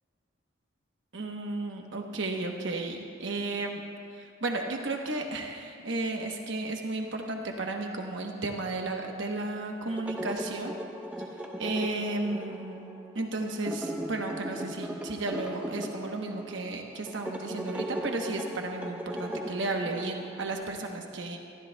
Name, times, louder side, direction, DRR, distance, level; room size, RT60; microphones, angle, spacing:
voice 1, 1.1-3.8 4.1-10.8 11.6-12.9 13.1-21.4, right 2 dB, 65° right, 2 dB, 1.0 m, -33 dB
sound 1, 9.9-20.6, right 1 dB, 5° right, 0.8 m, -38 dB
27.0 x 13.0 x 2.2 m, 2.4 s
head